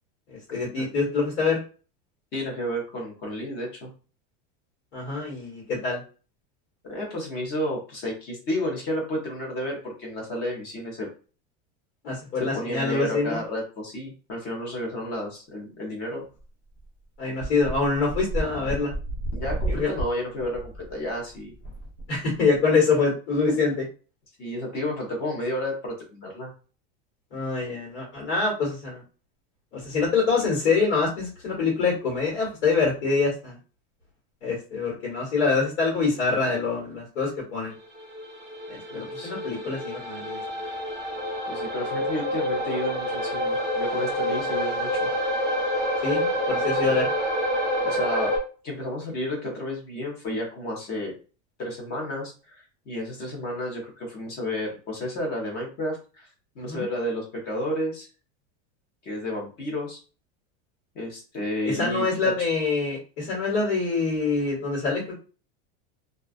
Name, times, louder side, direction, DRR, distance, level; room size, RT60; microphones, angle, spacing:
voice 1, 0.3-1.6 4.9-6.0 12.0-13.4 17.2-18.9 19.7-19.9 22.1-23.9 27.3-29.0 29.7-33.5 34.4-37.7 38.7-40.4 46.0-47.1 56.6-56.8 61.6-65.0, left 4 dB, 75° left, -3 dB, 1.4 m, -25 dB
voice 2, 2.3-3.9 6.9-11.1 12.4-16.3 19.3-21.5 24.4-26.5 38.9-39.3 41.5-45.1 46.7-47.0 47.8-48.3 48.6-51.2 51.6-56.3 56.6-58.1 59.0-60.0 60.9-62.3, left 1 dB, 25° left, 0 dB, 0.7 m, -31 dB
sound 1, 16.4-16.5 16.8-16.9 17.4-22.6, right 1 dB, 60° left, 0.9 m, -32 dB
sound 2, 38.0-48.4, equal, 10° right, 0.8 m, -27 dB
2.3 x 2.3 x 2.4 m, 0.36 s
supercardioid pair, 175°, 37 cm